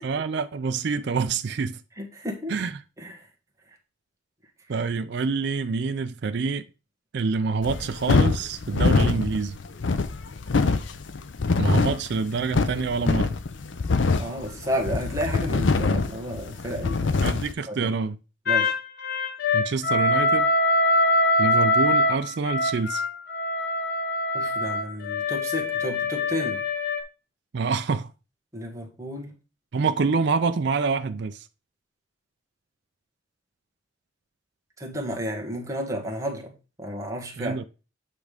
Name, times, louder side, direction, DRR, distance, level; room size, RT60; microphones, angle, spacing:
voice 1, 0.0-1.8 2.5-2.8 4.7-6.6 7.1-9.6 11.6-13.3 17.2-18.2 19.5-20.5 21.4-23.0 27.5-28.1 29.7-31.5 37.4-37.6, right 4 dB, 60° right, 0.4 m, -26 dB
voice 2, 2.0-2.5 3.0-3.1 14.2-17.3 17.7-17.9 18.5-18.7 24.3-26.6 28.5-29.3 34.8-36.5 36.8-37.6, equal, 15° right, 1.5 m, -32 dB
sound 1, 7.6-17.5, left 3 dB, 70° left, 0.6 m, -24 dB
sound 2, 18.5-27.0, left 2 dB, 55° left, 1.1 m, -23 dB
8.5 x 3.5 x 5.0 m
head